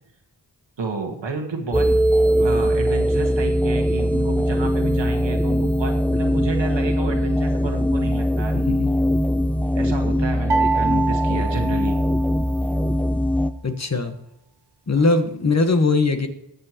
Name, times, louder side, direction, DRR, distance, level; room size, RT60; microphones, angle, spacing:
voice 1, 0.8-1.9 2.4-8.5 9.7-12.0 14.9-15.1, right 4 dB, 85° right, 3 dB, 1.7 m, -31 dB
sound 1, 1.7-13.5, equal, 5° left, 0.4 m, -21 dB
sound 2, 10.5-12.6, right 4 dB, 65° right, 1.0 m, -25 dB
voice 2, 13.6-14.1 14.9-16.3, left 3 dB, 40° left, 6 dB, 1.3 m, -20 dB
20.0 x 6.8 x 3.0 m, 0.78 s
wide cardioid pair, 55°, 43 cm